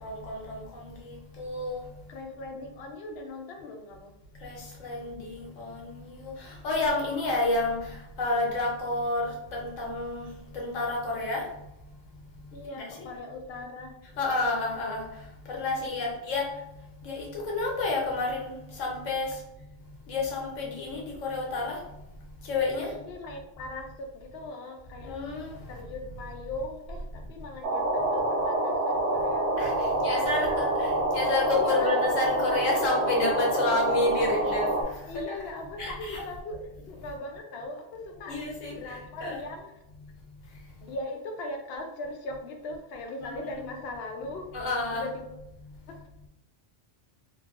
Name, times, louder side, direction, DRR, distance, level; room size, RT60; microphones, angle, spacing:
voice 1, 0.0-1.8 4.4-7.8 8.2-10.3 10.5-11.4 12.8-12.9 14.2-15.0 15.5-16.5 17.0-18.5 18.8-19.3 20.1-21.8 22.4-22.9 25.0-25.5 29.6-34.7 35.1-35.2 35.8-36.2 38.3-38.8 39.2-39.4 43.2-43.5 44.5-45.1, left 2 dB, 80° left, -1 dB, 1.1 m, -30 dB
voice 2, 2.1-4.1 12.5-14.0 22.8-25.1 25.7-29.5 30.1-30.7 31.6-31.9 35.1-38.4 38.7-39.7 40.8-44.5 44.9-45.2, left 2 dB, 65° left, 3 dB, 0.7 m, -39 dB
sound 1, 27.6-34.8, right 1 dB, 60° right, 0.8 m, -27 dB
3.0 x 2.5 x 2.3 m, 0.87 s
omnidirectional pair, 1.3 m